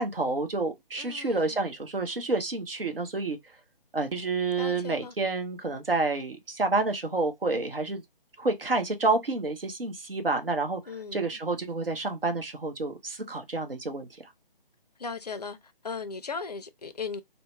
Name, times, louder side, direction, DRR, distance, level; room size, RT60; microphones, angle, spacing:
voice 1, 0.0-3.4 3.9-8.0 8.4-10.8 11.1-14.1, right 3 dB, 75° right, 0.9 m, -29 dB
voice 2, 1.0-1.6 4.6-5.1 10.9-11.3 15.0-15.6 15.8-17.2, left 5 dB, 45° left, 0.4 m, -37 dB
2.7 x 2.1 x 3.0 m
figure-of-eight pair, 150°, 29 cm